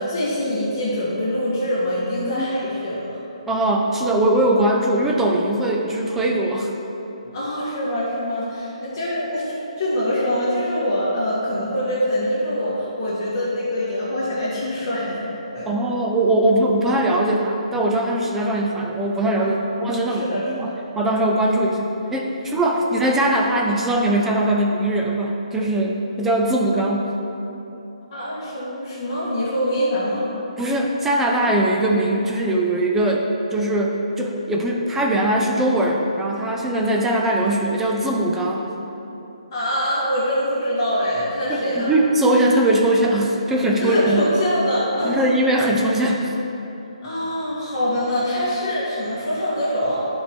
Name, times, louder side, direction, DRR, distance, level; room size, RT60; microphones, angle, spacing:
voice 1, 0.0-3.0 7.3-15.2 15.5-15.7 19.4-19.6 20.1-20.7 22.8-22.9 28.1-30.3 39.5-41.9 43.8-45.3 47.0-50.0, equal, 35° left, -10 dB, 1.9 m, -24 dB
voice 2, 3.5-6.7 15.7-27.1 30.6-38.6 41.5-44.3 45.0-46.3, right 1 dB, 5° right, 0 dB, 0.4 m, -21 dB
11.0 x 4.6 x 4.5 m, 3.0 s
hypercardioid pair, 165°, 4 cm